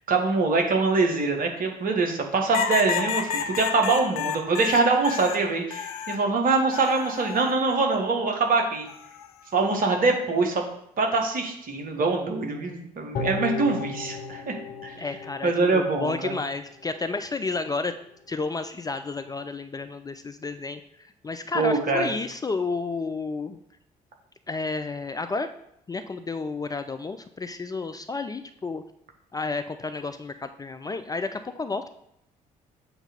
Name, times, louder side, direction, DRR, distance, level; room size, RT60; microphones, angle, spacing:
voice 1, 0.1-8.9 9.5-10.6 11.0-14.6 14.8-14.9 15.4-16.4 21.5-22.1, right 3 dB, 45° right, 3 dB, 1.4 m, -24 dB
sound 1, 2.5-6.2 6.7-7.5 8.9-9.3, left 8 dB, 70° left, 0.5 m, -30 dB
sound 2, 13.1-16.5 16.8-16.9, left 4 dB, 55° left, 1.1 m, -35 dB
voice 2, 15.0-17.9 18.3-20.8 21.2-23.6 24.5-25.5 25.9-28.8 29.3-31.9, left 3 dB, 20° left, 8 dB, 0.4 m, -31 dB
7.8 x 3.0 x 5.1 m, 0.78 s
figure-of-eight pair, 45°, 19 cm